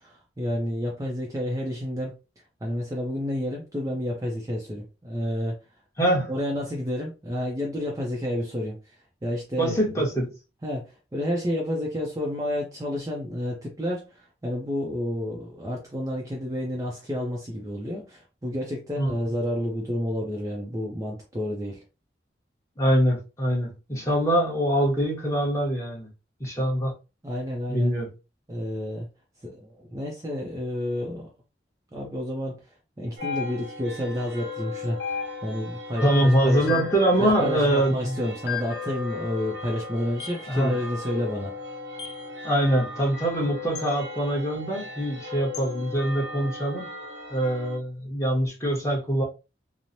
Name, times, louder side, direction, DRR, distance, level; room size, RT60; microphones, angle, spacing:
voice 1, 0.0-2.1 2.6-5.6 6.3-8.8 9.2-9.7 10.6-21.8 27.2-27.9 28.5-29.1 29.4-31.3 31.9-32.6 33.0-36.9 37.2-41.5, equal, 20° right, 0.4 m, -30 dB
voice 2, 6.0-6.3 9.6-10.3 19.0-19.1 22.8-26.1 26.4-26.9 27.7-28.1 36.0-38.2 40.5-40.8 42.4-46.9 47.3-49.2, right 1 dB, 15° left, 0.9 m, -24 dB
sound 1, 33.2-33.9 35.0-35.7 36.7-37.1 38.5-38.9 40.2-40.5 42.0-42.3 43.7-43.9 45.5-45.7, left 7 dB, 65° left, 0.5 m, -34 dB
sound 2, 33.2-47.8, left 3 dB, 70° right, 0.8 m, -38 dB
3.0 x 2.0 x 2.6 m
head